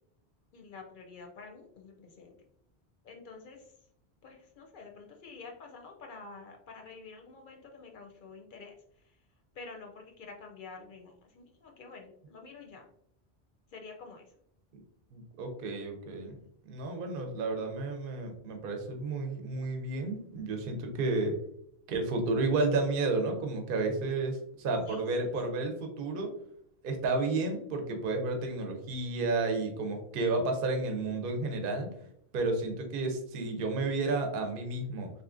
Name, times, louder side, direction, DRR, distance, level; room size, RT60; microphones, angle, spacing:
voice 1, 0.5-2.3 3.0-3.7 4.2-8.8 9.5-12.8 13.7-14.3 24.9-25.0, left 4 dB, 60° left, 2 dB, 0.6 m, -48 dB
voice 2, 15.1-16.4 16.7-21.3 21.9-26.3 26.8-31.9 32.3-35.1, right 3 dB, 60° right, 4 dB, 0.8 m, -31 dB
3.6 x 2.8 x 2.4 m, 0.71 s
omnidirectional pair, 1.1 m